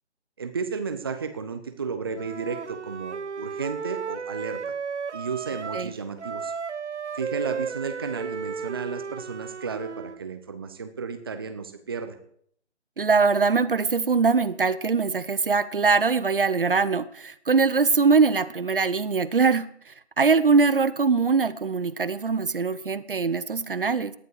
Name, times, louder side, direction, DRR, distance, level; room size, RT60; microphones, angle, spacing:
voice 1, 0.4-4.6 5.1-6.5 7.1-12.2, right 5 dB, 20° right, 9 dB, 0.9 m, -33 dB
Wind instrument woodwind instrument, 2.1-5.9 6.2-10.2, right 6 dB, 80° right, 0.7 m, -34 dB
voice 2, 13.0-24.1, right 4 dB, 50° right, 15 dB, 0.9 m, -22 dB
18.0 x 11.0 x 4.8 m, 0.65 s
figure-of-eight pair, 155°, 34 cm